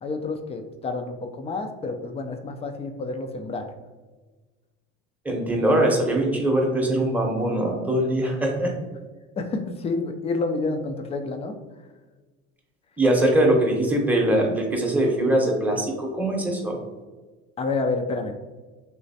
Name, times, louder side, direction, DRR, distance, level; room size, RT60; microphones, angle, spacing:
voice 1, 0.0-3.7 9.4-11.6 17.6-18.3, left 3 dB, 20° left, 6 dB, 0.3 m, -29 dB
voice 2, 5.2-8.7 13.0-16.8, right 1 dB, 5° right, -1 dB, 0.8 m, -22 dB
3.2 x 3.0 x 2.7 m, 1.3 s
supercardioid pair, 90°, 32 cm